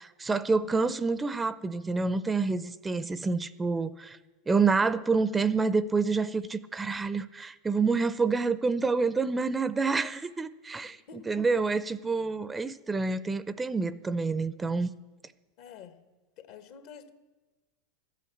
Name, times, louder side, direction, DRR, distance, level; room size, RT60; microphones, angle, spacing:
voice 1, 0.0-4.2 4.5-14.9, right 4 dB, 15° right, 15 dB, 0.6 m, -28 dB
voice 2, 10.8-11.4 15.6-16.0 16.4-17.1, left 6 dB, 60° left, 9 dB, 1.3 m, -48 dB
13.0 x 8.4 x 8.6 m, 1.2 s
hypercardioid pair, 100°, 0 cm